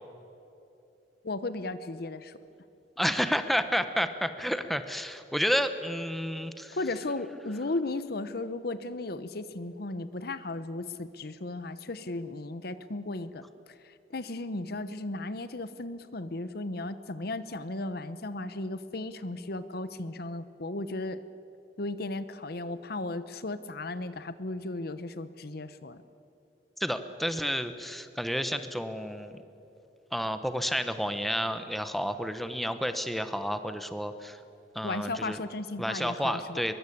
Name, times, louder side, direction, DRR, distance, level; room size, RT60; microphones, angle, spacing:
voice 1, 1.2-2.4 6.7-13.4 13.8-21.2 21.8-26.0 34.8-36.6, left 2 dB, 60° left, 14 dB, 1.0 m, -35 dB
voice 2, 3.0-6.8 26.8-29.4 30.1-34.4 34.7-35.4 35.8-36.7, equal, ahead, 10 dB, 1.1 m, -30 dB
23.0 x 22.5 x 8.6 m, 2.8 s
head